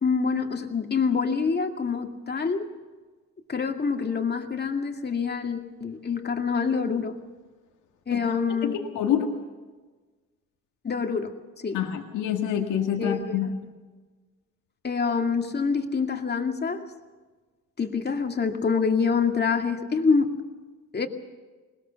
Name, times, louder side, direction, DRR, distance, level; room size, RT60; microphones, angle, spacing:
voice 1, 0.0-2.7 3.5-7.1 8.1-8.7 10.8-11.8 13.0-13.5 14.8-16.8 17.8-20.4 20.9-21.1, left 5 dB, 35° left, 4 dB, 2.3 m, -26 dB
voice 2, 8.6-9.4 11.7-13.5, left 9 dB, 90° left, 2 dB, 1.9 m, -27 dB
21.0 x 20.5 x 7.0 m, 1.3 s
cardioid pair, 90°, 30 cm